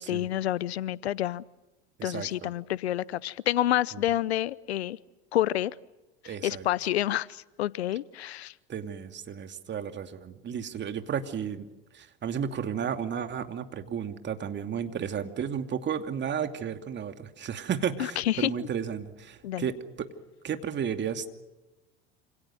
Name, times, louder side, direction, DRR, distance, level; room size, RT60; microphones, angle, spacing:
voice 1, 0.0-1.4 2.0-5.0 5.3-5.7 6.2-8.5 18.0-18.7 19.4-19.7, left 13 dB, 80° left, 22 dB, 0.8 m, -29 dB
voice 2, 2.0-2.5 6.2-6.6 8.7-11.7 11.9-20.1 20.4-21.3, right 8 dB, 35° right, 7 dB, 2.7 m, -33 dB
28.5 x 27.5 x 6.3 m, 1.1 s
hypercardioid pair, 75°, 31 cm